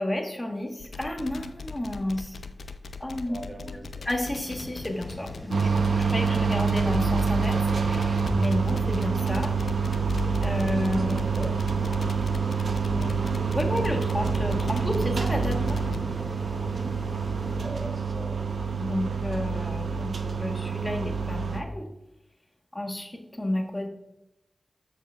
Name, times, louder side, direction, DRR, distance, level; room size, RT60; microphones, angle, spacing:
voice 1, 0.0-2.4 3.0-3.4 3.6-3.8 4.0-9.6 10.4-11.3 12.9-15.8 18.8-21.9 22.7-23.9, left 1 dB, 20° left, 3 dB, 1.1 m, -31 dB
sound 1, 0.8-16.0, left 4 dB, 90° left, 0.4 m, -40 dB
voice 2, 3.3-4.0 10.7-11.5 17.6-18.7, right 1 dB, 45° right, 1 dB, 1.3 m, -40 dB
sound 2, 4.4-17.6, right 1 dB, 5° right, 2.3 m, -41 dB
sound 3, 5.5-21.6, right 5 dB, 85° right, 0.6 m, -27 dB
7.4 x 7.1 x 2.3 m, 0.87 s
wide cardioid pair, 60°, 0 cm